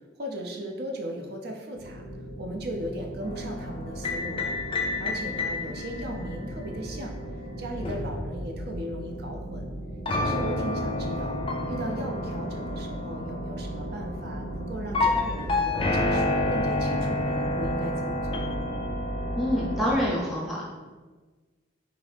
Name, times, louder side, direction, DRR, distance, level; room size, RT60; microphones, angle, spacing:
voice 1, 0.2-2.0 2.4-4.5 5.0-7.1 7.6-9.7 10.1-11.4 11.7-18.7, right 1 dB, 55° right, 2 dB, 0.5 m, -37 dB
sound 1, 1.7-19.9, right 1 dB, 85° right, 1.1 m, -37 dB
sound 2, 3.2-9.1 10.1-20.1, left 2 dB, 25° left, 0.3 m, -30 dB
voice 2, 19.3-20.6, equal, ahead, -5 dB, 0.8 m, -26 dB
3.8 x 2.6 x 3.3 m, 1.3 s
head